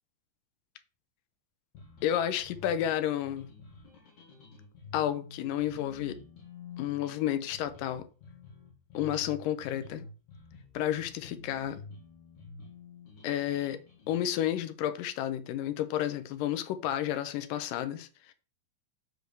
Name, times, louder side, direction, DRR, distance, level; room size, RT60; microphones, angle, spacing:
sound 1, 1.7-14.7, left 3 dB, 60° left, 3.7 m, -50 dB
voice 1, 2.0-3.5 4.9-6.2 6.8-8.1 8.9-10.1 10.7-11.8 13.2-13.8 14.1-18.3, left 11 dB, 80° left, 2.2 m, -31 dB
6.7 x 5.0 x 4.6 m
omnidirectional pair, 4.1 m